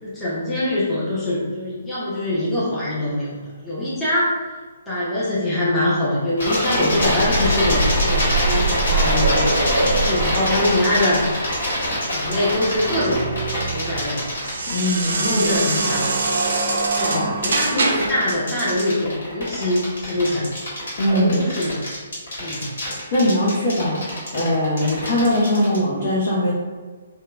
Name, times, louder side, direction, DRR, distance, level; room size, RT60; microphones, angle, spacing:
voice 1, 0.0-4.4 4.9-9.5 9.8-11.2 12.1-13.2 13.7-14.3 15.2-16.3 17.0-17.1 17.4-20.5 21.1-21.9 22.4-22.7, left 1 dB, 10° left, -11 dB, 0.6 m, -23 dB
sound 1, 6.4-25.8, left 1 dB, 65° left, 1.4 m, -25 dB
sound 2, 6.7-14.3 15.5-15.6 15.9-16.0, right 2 dB, 85° left, 0.8 m, -24 dB
closing-gate, 12.4-18.2, right 3 dB, 65° right, 0.4 m, -24 dB
voice 2, 14.7-15.9 17.0-17.4 17.8-17.9 21.0-21.5 23.1-26.5, left 1 dB, 50° left, -5 dB, 0.5 m, -21 dB
2.8 x 2.1 x 2.3 m, 1.4 s
figure-of-eight pair, 135°, 0 cm